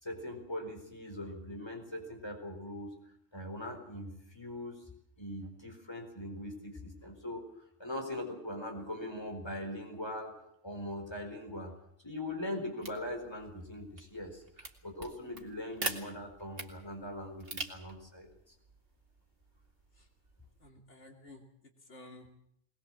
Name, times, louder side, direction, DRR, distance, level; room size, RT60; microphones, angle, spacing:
voice 1, 0.0-2.9 3.3-4.8 5.2-10.3 10.6-11.7 12.0-18.3, left 1 dB, 20° left, 3 dB, 4.4 m, -41 dB
sound 1, 12.8-20.7, right 2 dB, 55° right, 2.3 m, -45 dB
voice 2, 20.6-22.3, left 2 dB, 85° left, 2 dB, 3.2 m, -54 dB
21.0 x 20.5 x 7.7 m, 0.72 s
omnidirectional pair, 1.2 m